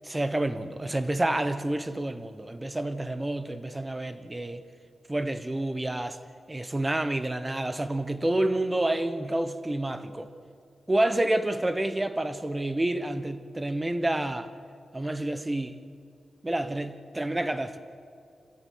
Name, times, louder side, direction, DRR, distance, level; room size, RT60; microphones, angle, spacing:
voice 1, 0.0-4.6 5.1-6.2 6.5-10.3 10.9-14.5 14.9-15.8 16.4-17.8, right 1 dB, 15° right, 1.1 m, -29 dB
27.0 x 13.0 x 9.5 m
wide cardioid pair, 120°, 0 cm